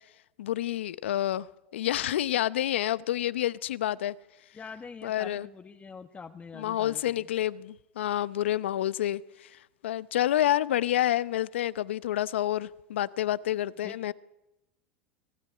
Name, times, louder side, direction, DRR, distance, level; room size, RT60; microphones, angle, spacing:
voice 1, 0.4-1.5 1.7-4.1 5.0-5.5 6.5-14.1, left 13 dB, 85° left, 0.8 m, -28 dB
voice 2, 4.5-7.3 13.8-14.1, left 5 dB, 25° left, 1.4 m, -44 dB
24.5 x 17.0 x 9.7 m
hypercardioid pair, 95°, 6 cm